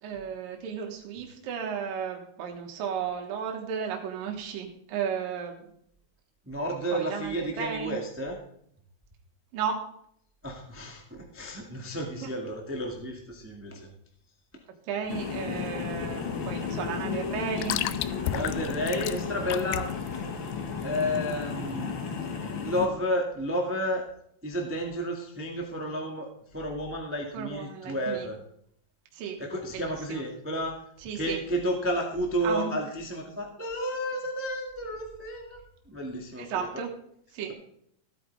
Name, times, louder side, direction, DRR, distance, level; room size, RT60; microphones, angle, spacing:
voice 1, 0.0-5.7 6.9-8.0 9.5-9.8 12.2-12.3 14.9-17.8 27.3-28.3 29.1-29.4 29.7-30.2 31.0-31.4 32.4-32.7 36.4-36.9 37.3-37.5, right 7 dB, 75° right, 2 dB, 3.1 m, -34 dB
voice 2, 6.4-8.4 10.4-13.9 18.3-19.9 20.8-22.0 22.6-24.0 24.4-28.4 29.4-30.8 31.1-35.6 35.9-36.7, equal, 15° right, 1 dB, 0.4 m, -31 dB
sound 1, 15.0-21.8, left 13 dB, 85° left, 2.2 m, -36 dB
sound 2, 15.1-22.9, left 5 dB, 50° left, 1.5 m, -33 dB
15.5 x 9.0 x 3.4 m, 0.69 s
omnidirectional pair, 4.1 m